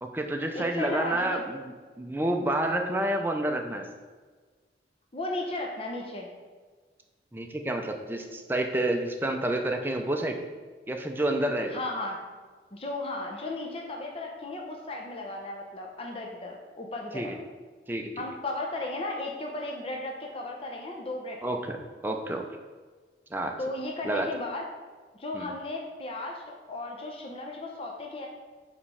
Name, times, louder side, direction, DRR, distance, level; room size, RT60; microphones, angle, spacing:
voice 1, 0.0-3.9 7.3-10.4 10.9-11.8 17.1-17.3 17.9-18.2 21.4-21.8 22.0-22.4 23.3-23.5 24.0-24.3 25.3-25.5, right 1 dB, 10° right, 3 dB, 0.5 m, -29 dB
voice 2, 0.5-1.4 5.1-6.3 11.7-12.2 12.7-17.3 18.2-21.6 23.6-24.7 25.1-28.3, left 2 dB, 30° left, 0 dB, 0.7 m, -35 dB
4.9 x 4.3 x 5.6 m, 1.4 s
head